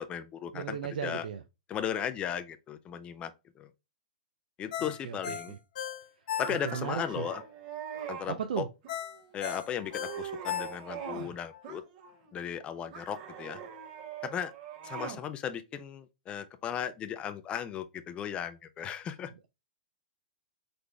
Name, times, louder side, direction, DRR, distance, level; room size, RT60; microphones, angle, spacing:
voice 1, 0.0-0.8 1.0-1.2 1.7-3.7 4.6-5.5 6.4-7.4 8.1-8.6 9.3-11.8 12.3-13.6 14.2-14.5 14.8-19.3, left 9 dB, 25° left, 0.4 m, -36 dB
voice 2, 0.5-1.4 4.8-5.6 6.5-7.3 8.3-8.7, right 7 dB, 75° right, 0.5 m, -36 dB
Ringtone, 4.7-7.0 7.3-7.4 8.9-11.1 11.5-11.6, left 10 dB, 65° left, 1.0 m, -37 dB
sound 1, 6.4-8.3 8.8-9.3 9.7-11.3 11.6-12.3 12.9-15.2, right 8 dB, 55° right, 1.4 m, -42 dB
4.0 x 3.4 x 3.2 m
hypercardioid pair, 125°, 5 cm